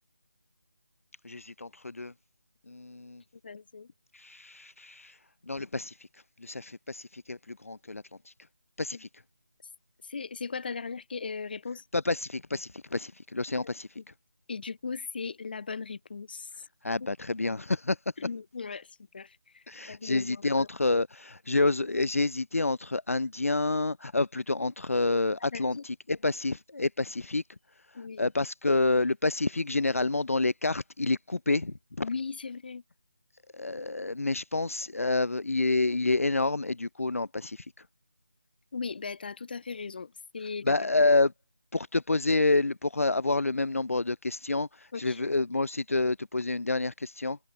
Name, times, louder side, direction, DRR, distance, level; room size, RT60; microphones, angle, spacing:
voice 1, 1.2-2.1 2.7-3.2 4.1-5.2 5.5-6.0 6.4-8.3 8.8-9.1 11.9-13.9 16.8-18.0 19.7-27.4 27.9-32.1 33.5-37.7 40.6-41.3 41.7-47.4, left 2 dB, 60° left, 1.3 m, -28 dB
voice 2, 3.4-3.9 8.9-9.0 10.1-11.8 13.6-13.7 14.5-16.5 18.2-18.9 19.1-20.7 25.5-25.8 27.9-28.2 32.0-32.8 38.7-40.7 44.9-45.2, left 5 dB, 35° left, 2.2 m, -38 dB
figure-of-eight pair, 160°, 9 cm